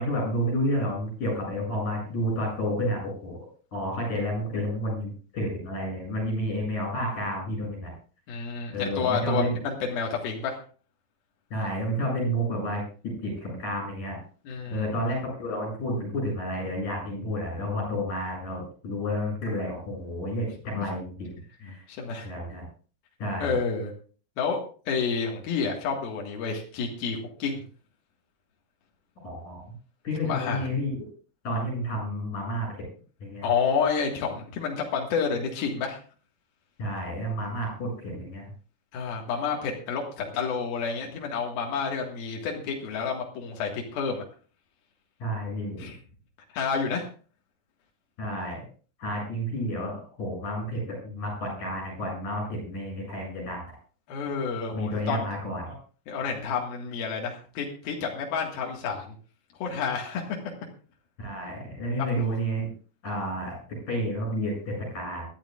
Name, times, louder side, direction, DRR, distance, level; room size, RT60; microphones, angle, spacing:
voice 1, 0.0-3.4 3.7-7.9 8.7-9.6 11.5-14.2 14.7-21.3 21.6-21.8 22.2-22.7 23.2-23.6 29.2-29.7 30.0-31.0 31.4-32.8 33.2-33.5 36.8-38.4 45.2-45.9 48.2-48.6 49.0-53.6 54.7-55.7 61.2-62.7 63.0-65.3, equal, 55° left, 0 dB, 9.3 m, -30 dB
voice 2, 8.3-10.6 14.5-14.9 20.8-20.9 21.6-22.3 23.4-23.9 24.4-24.6 24.9-27.6 30.2-30.7 33.4-36.0 38.9-44.3 45.8-46.0 46.5-47.1 54.1-55.3 56.1-59.1 59.6-60.4, left 5 dB, 75° left, 0 dB, 3.7 m, -29 dB
23.0 x 12.5 x 2.5 m, 0.39 s
omnidirectional pair, 4.3 m